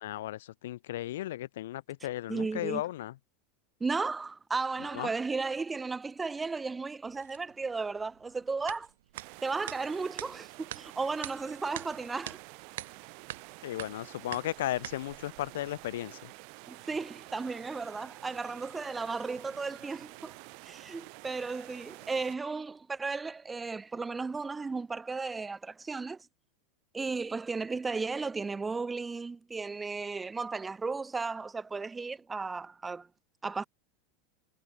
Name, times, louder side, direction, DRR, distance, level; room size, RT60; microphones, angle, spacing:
voice 1, 0.0-3.1 4.9-5.1 13.6-16.3, left 14 dB, 85° left, 1.8 m, -35 dB
voice 2, 2.3-2.8 3.8-8.9 9.4-12.4 16.7-20.4 20.6-26.2 26.9-33.1 33.4-33.6, right 4 dB, 10° right, 0.4 m, -35 dB
sound 1, 7.0-16.0, right 14 dB, 90° right, 1.2 m, -46 dB
sound 2, 9.1-22.4, right 40 dB or more, 55° right, 2.4 m, -49 dB
supercardioid pair, 140°, 0 cm